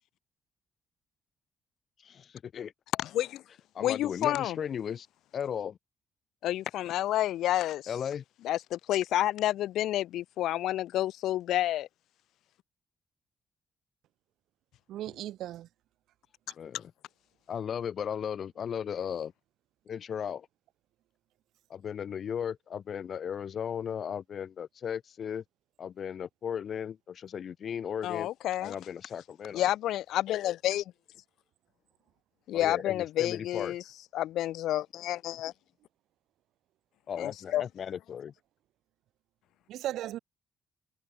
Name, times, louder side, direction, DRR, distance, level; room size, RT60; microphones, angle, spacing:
voice 1, 2.0-2.7 3.7-5.1 5.3-5.8 7.9-8.2 16.6-16.9 17.5-19.3 19.9-20.5 21.7-25.4 25.8-28.3 28.6-29.6 32.5-33.7 37.1-38.3, left 8 dB, 45° left, 1.8 m, -36 dB
voice 2, 3.0-3.4 3.8-4.6 6.4-7.9 8.4-11.9 28.0-28.8 29.5-30.8 32.5-33.8 34.1-35.5 37.2-37.6, left 13 dB, 90° left, 0.4 m, -29 dB
voice 3, 14.9-15.7 39.7-40.2, right 13 dB, 85° right, 2.6 m, -36 dB
cardioid pair, 150°, 0 cm